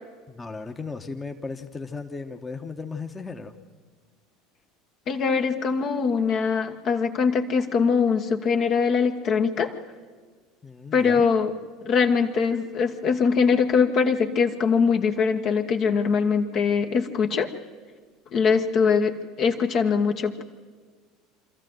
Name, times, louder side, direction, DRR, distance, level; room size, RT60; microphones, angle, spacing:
voice 1, 0.3-3.6 10.6-11.3, left 4 dB, 20° left, 5 dB, 1.3 m, -36 dB
voice 2, 5.1-9.7 10.9-11.5 11.8-17.5 18.3-20.4, left 5 dB, 45° left, 5 dB, 1.4 m, -22 dB
25.5 x 14.0 x 7.9 m, 1.5 s
figure-of-eight pair, 70°, 0 cm